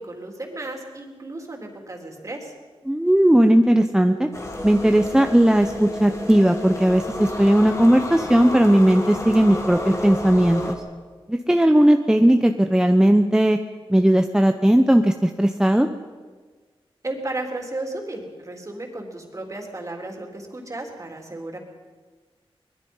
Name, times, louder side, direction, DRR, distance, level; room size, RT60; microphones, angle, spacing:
voice 1, 0.0-2.5 17.0-21.6, right 2 dB, 35° right, 2 dB, 3.8 m, -34 dB
voice 2, 2.9-4.3 4.6-10.8 11.3-13.6 13.9-15.9, right 1 dB, 5° right, 6 dB, 0.9 m, -17 dB
sound 1, 4.3-10.8, left 1 dB, 30° left, 2.9 m, -31 dB
24.0 x 21.0 x 5.6 m, 1.4 s
wide cardioid pair, 105°, 10 cm